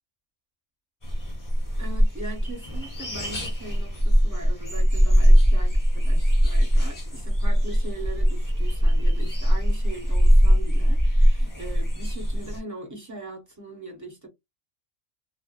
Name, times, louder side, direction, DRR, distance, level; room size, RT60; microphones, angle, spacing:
sound 1, 1.0-12.6, equal, 15° left, 0.8 m, -21 dB
voice 1, 1.8-14.3, right 2 dB, 15° right, 0.8 m, -40 dB
2.5 x 2.2 x 2.3 m
omnidirectional pair, 1.3 m